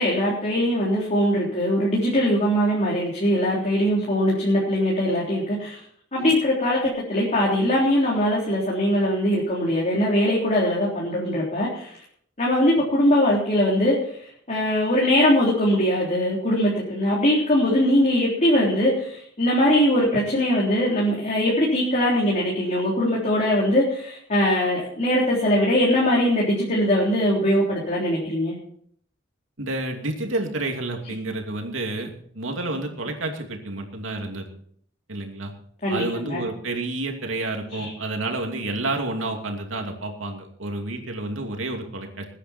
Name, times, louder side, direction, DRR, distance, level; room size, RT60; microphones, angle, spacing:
voice 1, 0.0-5.8 6.1-12.0 12.4-14.2 14.5-28.6 35.8-36.5 37.8-37.9, equal, 40° left, -4 dB, 3.7 m, -21 dB
voice 2, 29.6-34.4 35.1-35.5 35.9-42.3, right 2 dB, 90° right, 3 dB, 2.7 m, -30 dB
21.0 x 10.0 x 4.5 m, 0.63 s
head